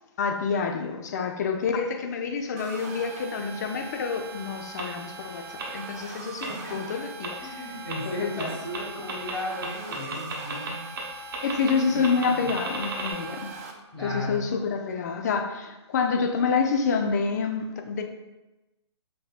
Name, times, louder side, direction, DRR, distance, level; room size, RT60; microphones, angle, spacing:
voice 1, 0.2-7.4 8.0-8.5 11.4-13.6 14.0-18.0, left 5 dB, 35° left, 0.4 m, -28 dB
sound 1, 2.6-13.7, right 4 dB, 30° right, 0.4 m, -41 dB
sound 2, 4.8-4.9 5.6-5.7 6.4-6.5 7.2-7.3 7.9-8.0 8.4-8.5 8.7-8.8 9.1-9.3 9.6-10.7 11.0-11.1 11.3-11.7 12.0-13.1, right 5 dB, 50° right, 0.9 m, -33 dB
voice 2, 6.4-6.8 7.4-10.9 11.9-12.5 13.9-14.5, left 1 dB, 10° left, 1.3 m, -35 dB
5.3 x 2.8 x 2.4 m
figure-of-eight pair, 140°, 15 cm